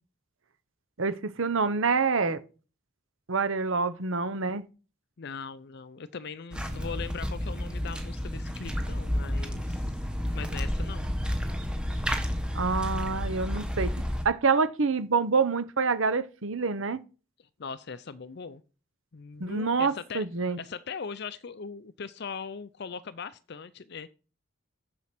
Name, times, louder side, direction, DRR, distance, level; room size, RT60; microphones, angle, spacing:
voice 1, 1.0-2.4 3.3-4.6 12.5-13.9 14.2-17.0 19.4-20.6, right 4 dB, 60° right, 0.8 m, -26 dB
voice 2, 5.2-10.0 10.3-11.1 17.6-18.6 19.1-24.1, left 5 dB, 50° left, 0.5 m, -40 dB
sound 1, 6.5-14.2, equal, 5° right, 1.3 m, -31 dB
7.4 x 6.8 x 6.0 m
head